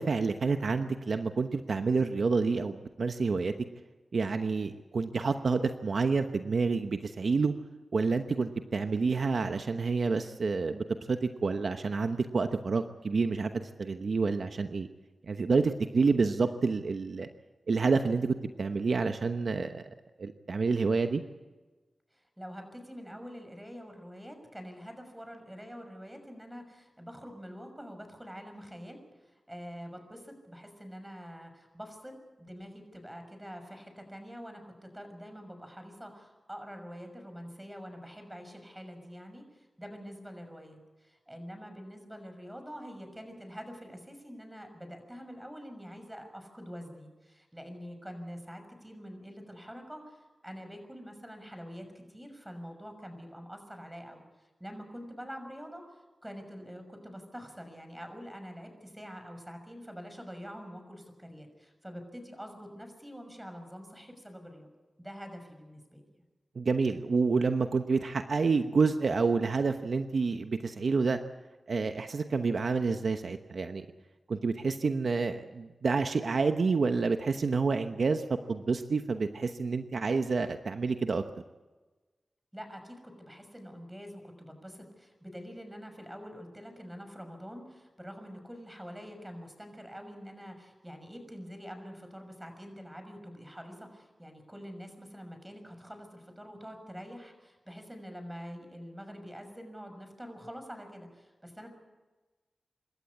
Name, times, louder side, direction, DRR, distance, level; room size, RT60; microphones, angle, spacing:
voice 1, 0.0-3.5 4.1-7.5 7.9-14.9 15.2-17.3 17.7-19.8 20.2-21.2 66.6-71.2 71.7-73.9 74.3-81.2, right 4 dB, 70° right, 8 dB, 1.0 m, -28 dB
voice 2, 22.1-64.7 65.0-66.0 82.5-101.7, equal, 10° right, 6 dB, 6.2 m, -46 dB
26.5 x 13.0 x 8.5 m, 1.2 s
cardioid pair, 45°, 0 cm